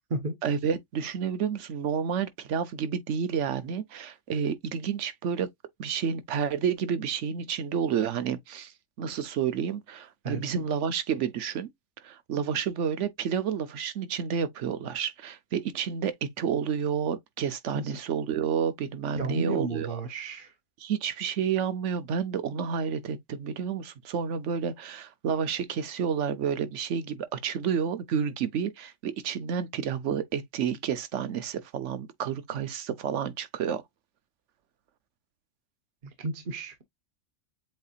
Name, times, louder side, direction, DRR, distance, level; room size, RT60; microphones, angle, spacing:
voice 1, 0.4-5.5 5.8-8.7 9.0-11.7 12.0-20.0 20.8-33.8, right 7 dB, 70° right, 1.1 m, -30 dB
voice 2, 10.2-10.6 17.7-17.9 19.1-20.5 36.0-36.8, right 2 dB, 45° right, 1.0 m, -33 dB
7.6 x 2.7 x 2.4 m
omnidirectional pair, 1.3 m